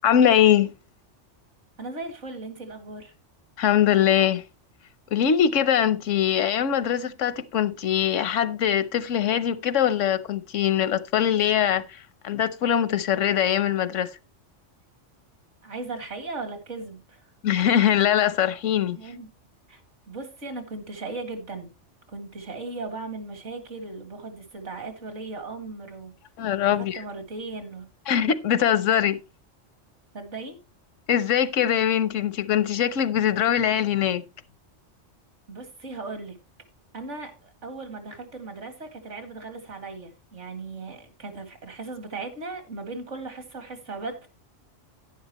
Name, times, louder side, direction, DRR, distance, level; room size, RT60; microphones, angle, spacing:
voice 1, 0.0-0.7 3.6-4.4 5.1-14.1 17.4-19.0 26.4-27.0 28.1-29.2 31.1-34.2, left 9 dB, 85° left, 1.2 m, -22 dB
voice 2, 1.8-3.1 15.6-17.2 18.9-19.3 19.7-19.8 20.1-21.7 22.1-26.1 26.7-27.8 30.1-30.6 35.5-36.4 36.9-44.3, right 3 dB, 75° right, 2.5 m, -37 dB
11.0 x 10.5 x 3.0 m
omnidirectional pair, 1.2 m